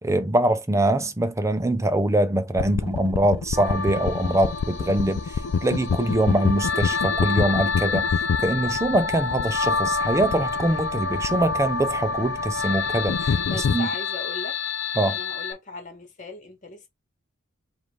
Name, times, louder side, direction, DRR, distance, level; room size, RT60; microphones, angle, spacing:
voice 1, 0.0-8.1 8.4-13.9 15.0-15.2, right 1 dB, 15° right, 0.5 m, -23 dB
sound 1, 2.6-13.7, left 5 dB, 70° left, 0.4 m, -28 dB
sound 2, 3.5-15.5, left 4 dB, 55° left, 0.9 m, -28 dB
voice 2, 13.4-14.6 15.1-16.9, left 3 dB, 40° left, 1.6 m, -38 dB
4.8 x 2.6 x 3.3 m
head